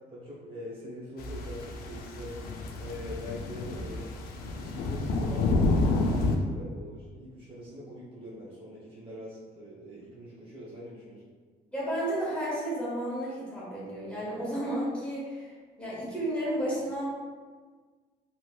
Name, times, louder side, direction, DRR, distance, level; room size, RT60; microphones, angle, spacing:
voice 1, 0.1-4.1 4.5-11.2, equal, 30° right, -7 dB, 0.9 m, -43 dB
sound 1, 1.2-6.4, left 2 dB, 65° left, 0.4 m, -29 dB
voice 2, 11.7-15.5 15.8-17.0, right 1 dB, 5° left, -8 dB, 1.2 m, -32 dB
3.0 x 2.8 x 2.2 m, 1.5 s
cardioid pair, 110°, 17 cm